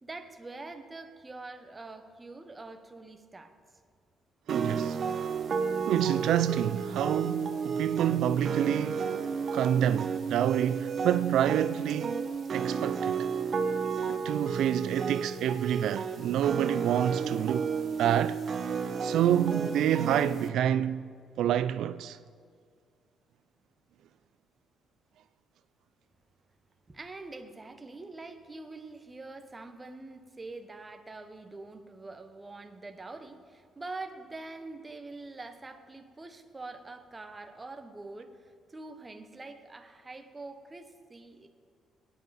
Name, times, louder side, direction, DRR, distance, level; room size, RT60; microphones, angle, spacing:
voice 1, 0.0-3.5 26.9-41.5, right 3 dB, 15° right, 0.9 m, -44 dB
sound 1, 4.5-20.5, right 6 dB, 40° right, 0.8 m, -32 dB
voice 2, 4.5-5.0 5.9-9.1 9.5-12.2 12.5-13.3 14.1-17.7 18.0-18.4 19.0-21.1 21.4-22.2, right 11 dB, 80° right, 0.3 m, -28 dB
23.5 x 9.1 x 4.1 m
cardioid pair, 150°, 0 cm